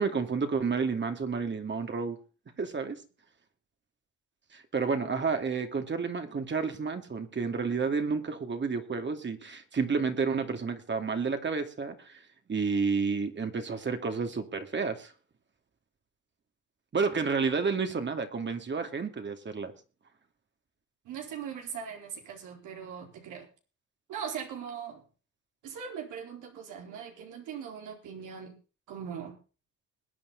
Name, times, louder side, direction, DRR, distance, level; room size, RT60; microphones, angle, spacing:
voice 1, 0.0-2.2 2.6-3.0 4.5-12.2 12.5-15.1 16.9-19.7, right 5 dB, 35° right, 6 dB, 2.5 m, -30 dB
voice 2, 21.0-23.5 24.1-25.0 25.6-28.5 28.9-29.3, right 7 dB, 85° right, 2 dB, 4.3 m, -40 dB
21.5 x 8.8 x 4.1 m, 0.36 s
cardioid pair, 90°, 30 cm